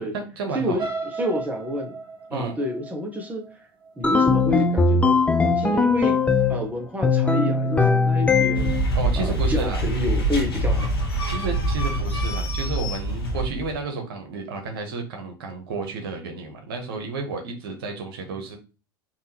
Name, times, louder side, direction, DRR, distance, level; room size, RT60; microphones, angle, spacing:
voice 1, 0.0-0.8 2.3-2.6 8.9-9.8 11.3-18.6, right 3 dB, 70° right, 4 dB, 1.0 m, -32 dB
voice 2, 0.5-2.0 2.3-3.5 4.0-6.2 6.5-8.7 9.2-10.9, left 1 dB, 10° right, 2 dB, 1.0 m, -29 dB
sound 1, 0.8-4.7 5.2-5.5 5.9-6.0, right 4 dB, 40° right, 1.0 m, -35 dB
sound 2, 4.0-6.7 7.0-8.9, left 4 dB, 10° left, 0.4 m, -20 dB
sound 3, 8.5-13.8, right 1 dB, 85° left, 1.0 m, -25 dB
3.6 x 2.7 x 2.8 m, 0.32 s
hypercardioid pair, 85°, 12 cm